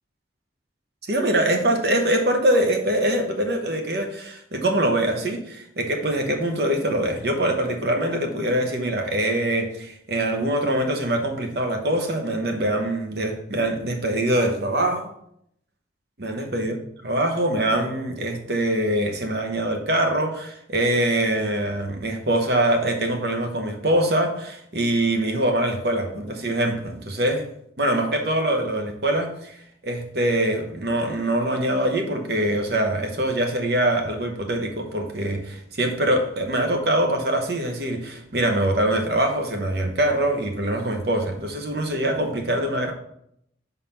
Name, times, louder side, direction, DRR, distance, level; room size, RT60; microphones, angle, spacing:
voice 1, 1.1-15.1 16.2-16.8 17.0-27.4 27.8-29.6 29.8-42.9, right 1 dB, 60° right, 4 dB, 1.0 m, -23 dB
5.3 x 4.0 x 5.7 m, 0.72 s
head